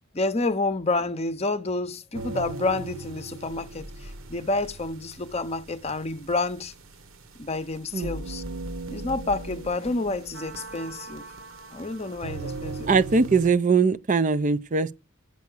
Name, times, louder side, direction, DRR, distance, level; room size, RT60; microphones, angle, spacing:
voice 1, 0.1-6.7 7.4-8.4 8.9-11.2 11.7-12.9, left 2 dB, 30° left, 0.7 m, -29 dB
sound 1, 2.1-13.5, right 3 dB, 60° right, 1.2 m, -39 dB
voice 2, 12.9-14.9, right 4 dB, 35° right, 0.5 m, -21 dB
8.4 x 5.8 x 8.0 m
head